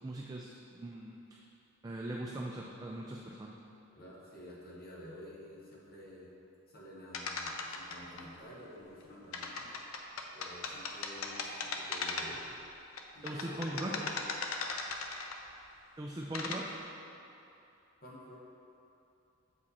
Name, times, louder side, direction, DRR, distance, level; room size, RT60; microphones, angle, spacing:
voice 1, 0.0-1.2 1.8-3.5 13.2-13.9 16.0-16.8, right 1 dB, 20° right, -2 dB, 0.4 m, -40 dB
voice 2, 3.9-6.3 6.7-9.8 10.3-12.5 13.1-14.1 18.0-18.4, equal, 45° left, -5 dB, 1.2 m, -50 dB
sound 1, 7.1-8.2 9.3-12.5 13.0-15.5 16.1-16.6, left 4 dB, 75° left, 0.6 m, -38 dB
7.2 x 5.0 x 4.2 m, 2.8 s
head